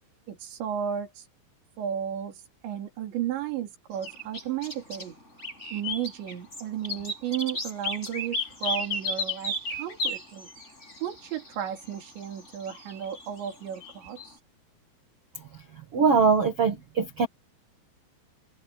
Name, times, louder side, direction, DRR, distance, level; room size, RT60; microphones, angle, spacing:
voice 1, 0.3-1.3 1.8-5.2 5.7-10.5 11.0-14.4, right 9 dB, 80° right, 5.5 m, -34 dB
sound 1, 4.0-5.1 5.4-14.3, left 1 dB, 15° left, 7.4 m, -34 dB
voice 2, 15.9-17.3, right 5 dB, 50° right, 1.9 m, -22 dB
omnidirectional pair, 5.1 m